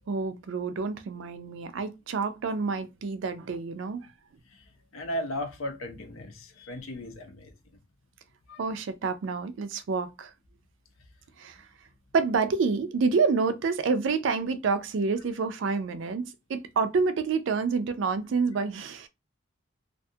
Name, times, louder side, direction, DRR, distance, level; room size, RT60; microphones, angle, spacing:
voice 1, 0.1-4.1 8.6-10.3 11.4-11.6 12.1-19.1, right 4 dB, 65° right, 0.4 m, -28 dB
voice 2, 4.9-7.5 8.5-8.6, equal, 90° left, 0.7 m, -36 dB
2.4 x 2.3 x 2.7 m
head